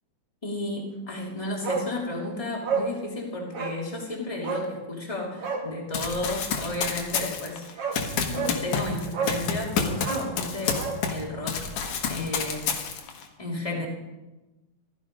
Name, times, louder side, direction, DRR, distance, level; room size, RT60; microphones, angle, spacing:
voice 1, 0.4-11.6 12.1-13.0 13.4-13.9, left 2 dB, 10° left, -2 dB, 2.6 m, -33 dB
Bark, 1.6-1.9 2.2-2.3 2.6-2.9 3.5-3.8 4.4-4.7 5.4-5.7 7.3-7.4 7.8-8.0 8.3-8.6 9.1-9.4 10.0-11.0 11.3-11.4, right 5 dB, 55° right, 2.4 m, -29 dB
Run, 5.9-11.2 11.5-13.2, left 6 dB, 70° left, 2.8 m, -29 dB
15.0 x 13.5 x 5.3 m, 1.1 s
omnidirectional pair, 3.5 m